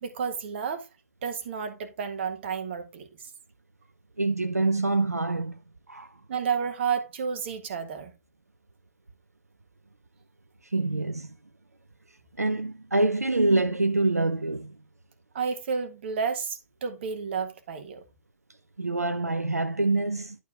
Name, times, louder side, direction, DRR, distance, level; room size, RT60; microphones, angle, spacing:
voice 1, 0.0-0.9 1.2-3.1 6.3-8.1 15.3-18.0, right 6 dB, 45° right, 1.7 m, -31 dB
voice 2, 4.2-5.5 5.9-6.1 10.7-11.3 12.4-14.7 18.8-20.4, right 2 dB, 85° right, 0.7 m, -25 dB
11.0 x 4.6 x 3.6 m
figure-of-eight pair, 120°, 8 cm